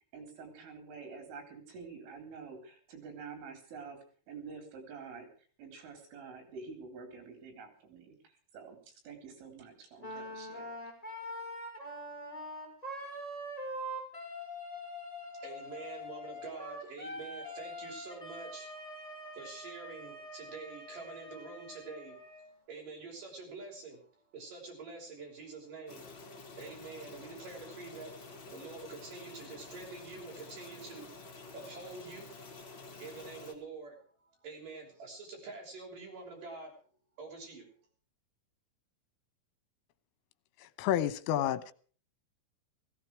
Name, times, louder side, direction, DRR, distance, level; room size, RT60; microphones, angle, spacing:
voice 1, 0.1-4.0 4.3-5.3 5.6-8.2 8.5-10.7, right 5 dB, 70° right, 6.4 m, -48 dB
Wind instrument woodwind instrument, 10.0-22.5, equal, 5° left, 5.0 m, -44 dB
voice 2, 15.3-32.6 33.0-34.0 34.4-36.7 37.2-37.7, right 4 dB, 40° right, 7.3 m, -47 dB
sound 1, 25.9-33.5, left 3 dB, 30° left, 2.4 m, -49 dB
voice 3, 40.8-41.7, left 11 dB, 80° left, 3.4 m, -29 dB
17.5 x 15.5 x 4.7 m
omnidirectional pair, 5.9 m